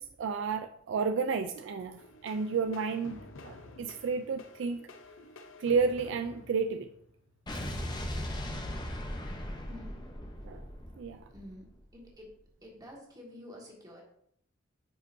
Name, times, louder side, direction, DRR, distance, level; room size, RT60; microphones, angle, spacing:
voice 1, 0.0-4.9 5.6-6.9 10.4-10.6 11.0-11.2, right 5 dB, 65° right, 9 dB, 0.4 m, -32 dB
sound 1, 2.0-7.4, left 2 dB, 80° left, 0.7 m, -51 dB
Explosion, 7.5-11.8, left 1 dB, 20° left, 0.8 m, -38 dB
voice 2, 9.7-10.0 11.3-11.7 11.9-12.3 12.6-14.0, left 1 dB, 20° right, -2 dB, 1.8 m, -48 dB
8.8 x 5.2 x 2.7 m, 0.68 s
head